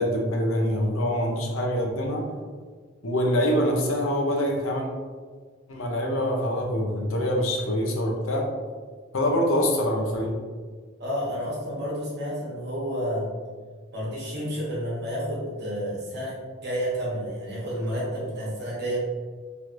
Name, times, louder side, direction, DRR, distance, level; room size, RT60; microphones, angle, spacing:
voice 1, 0.0-2.2 3.0-4.9 5.7-8.4 9.1-10.3, equal, 70° left, 1 dB, 0.6 m, -25 dB
voice 2, 11.0-13.3 13.9-16.3 16.6-19.0, equal, 50° right, -6 dB, 1.1 m, -30 dB
3.0 x 3.0 x 2.5 m, 1.5 s
head